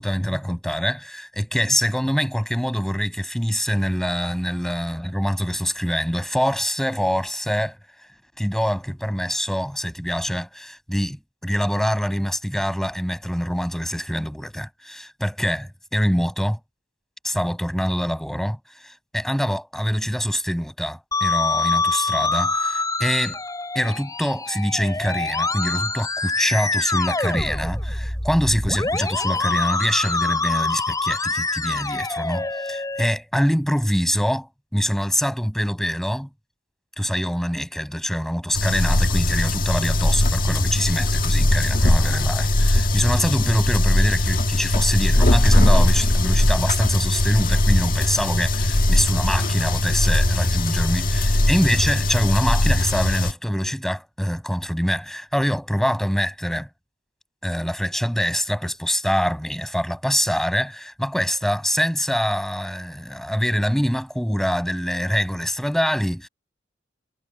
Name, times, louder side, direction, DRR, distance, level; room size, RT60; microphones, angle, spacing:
voice 1, 0.0-7.8 8.4-16.6 17.2-23.4 23.7-34.5 34.7-36.3 37.0-56.7 57.4-66.3, equal, ahead, 7.9 m, -24 dB
Musical instrument, 21.1-33.1, left 3 dB, 20° left, 5.1 m, -25 dB
sound 1, 38.5-53.3, left 1 dB, 50° left, 1.6 m, -20 dB
head